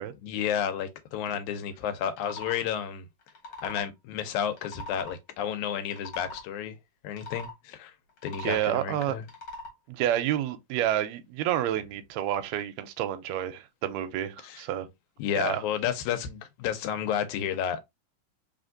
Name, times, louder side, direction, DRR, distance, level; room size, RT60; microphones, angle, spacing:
voice 1, 0.2-3.1 3.6-6.8 7.0-7.9 8.2-9.2 14.4-14.6 15.2-17.8, left 9 dB, 80° left, 2.1 m, -31 dB
sound 1, 2.2-2.6 3.2-3.9 4.5-5.2 5.8-6.5 7.1-7.5 8.1-8.7 9.2-9.7, left 2 dB, 55° left, 1.8 m, -42 dB
voice 2, 8.4-9.2 9.9-14.9 15.4-15.6, right 12 dB, 80° right, 1.7 m, -29 dB
4.2 x 3.4 x 2.6 m
omnidirectional pair, 3.5 m